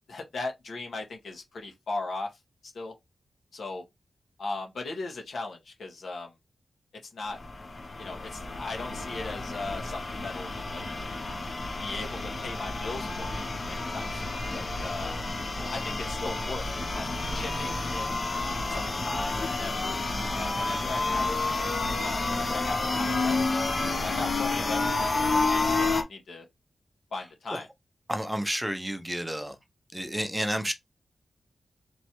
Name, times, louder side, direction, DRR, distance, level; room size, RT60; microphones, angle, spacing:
voice 1, 0.1-2.3 2.6-2.9 3.5-3.8 4.4-6.3 7.1-7.4 8.0-10.8 11.8-15.1 15.7-16.7 16.9-17.1 17.3-18.2 18.7-20.0 20.3-21.4 22.0-23.5 23.9-26.4 27.1-27.7, left 3 dB, 85° left, 1.5 m, -38 dB
sound 1, 7.3-26.0, left 3 dB, 40° left, 0.7 m, -30 dB
voice 2, 28.1-29.6 29.9-30.7, equal, 5° right, 0.6 m, -30 dB
4.4 x 3.1 x 3.0 m
wide cardioid pair, 130°, 0 cm